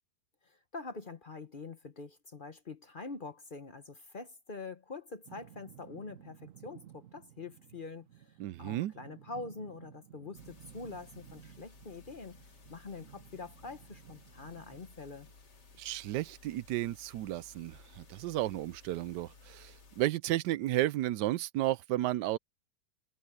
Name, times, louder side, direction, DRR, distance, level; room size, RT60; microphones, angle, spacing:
voice 1, 0.4-12.4 12.7-15.3, left 3 dB, 40° left, 0.9 m, -45 dB
sound 1, 5.2-15.3, right 11 dB, 55° right, 1.2 m, -56 dB
voice 2, 8.4-8.9 15.8-22.4, right 15 dB, 90° right, 1.2 m, -33 dB
sound 2, 10.4-20.1, left 3 dB, 85° left, 3.4 m, -58 dB
omnidirectional pair, 1.8 m